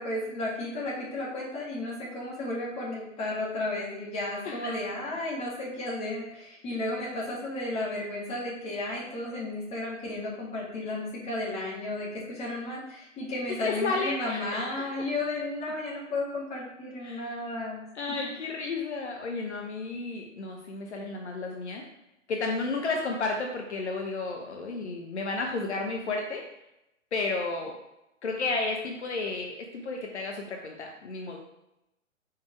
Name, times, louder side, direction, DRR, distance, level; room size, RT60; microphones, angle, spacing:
voice 1, 0.0-17.8, left 2 dB, 15° left, -5 dB, 2.0 m, -33 dB
voice 2, 4.4-4.8 13.5-15.1 17.0-17.4 18.0-21.8 22.3-26.5 27.1-27.8 28.2-31.4, left 3 dB, 60° left, 2 dB, 0.9 m, -32 dB
5.2 x 4.8 x 4.5 m, 0.88 s
figure-of-eight pair, 120°, 39 cm